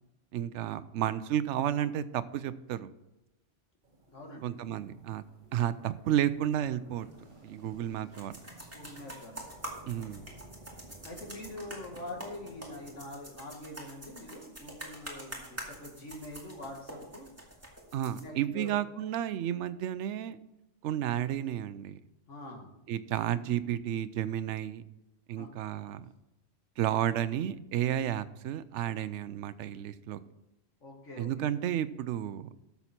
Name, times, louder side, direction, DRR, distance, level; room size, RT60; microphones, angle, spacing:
voice 1, 0.3-2.9 4.4-5.2 5.5-7.1 7.4-8.4 9.9-10.2 17.9-20.4 20.8-22.0 22.9-24.8 25.3-26.0 26.8-30.2 31.2-32.5, right 11 dB, 75° right, 14 dB, 0.9 m, -32 dB
sound 1, 3.8-13.1, right 1 dB, 40° right, 1.7 m, -54 dB
voice 2, 4.1-4.5 8.7-9.5 11.0-17.3 18.2-18.8 22.3-22.7 25.4-25.5 30.8-31.5, left 1 dB, 75° left, 1 dB, 2.2 m, -44 dB
sound 2, 7.0-18.2, right 1 dB, 10° right, 2.2 m, -46 dB
12.5 x 7.0 x 4.3 m, 0.95 s
omnidirectional pair, 1.3 m